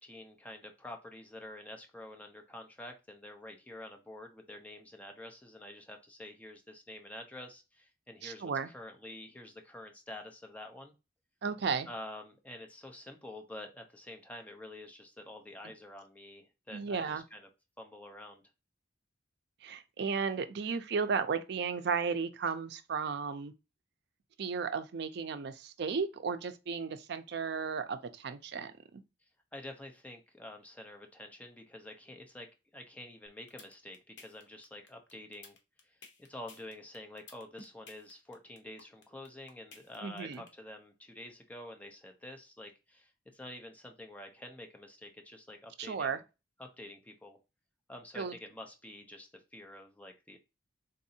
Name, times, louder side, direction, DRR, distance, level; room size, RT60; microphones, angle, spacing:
voice 1, 0.0-10.9 11.9-17.5 17.8-18.4 29.5-32.5 32.7-35.6 35.8-36.0 36.3-46.2 46.6-47.4 47.9-50.4, left 1 dB, 10° left, 0.6 m, -48 dB
voice 2, 8.2-8.7 11.4-11.9 16.7-17.2 19.6-23.5 24.4-29.0 40.0-40.4 45.8-46.2 48.2-48.3, right 5 dB, 65° right, 0.4 m, -34 dB
sound 1, 33.3-40.5, left 4 dB, 75° left, 0.9 m, -53 dB
3.9 x 2.7 x 2.7 m
head